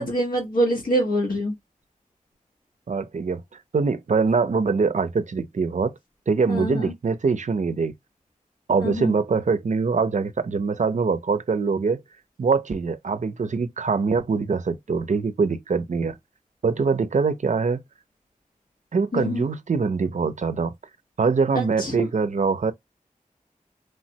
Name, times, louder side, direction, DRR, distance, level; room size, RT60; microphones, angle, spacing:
voice 1, 0.0-1.5 6.5-6.9 8.8-9.1 19.1-19.4 21.5-22.1, equal, 90° left, 0.9 m, -25 dB
voice 2, 2.9-5.9 6.3-7.9 8.7-12.0 12.4-16.2 16.6-17.8 18.9-20.7 21.2-22.7, right 4 dB, 60° right, 0.4 m, -23 dB
3.2 x 2.1 x 2.7 m
wide cardioid pair, 50°, 14 cm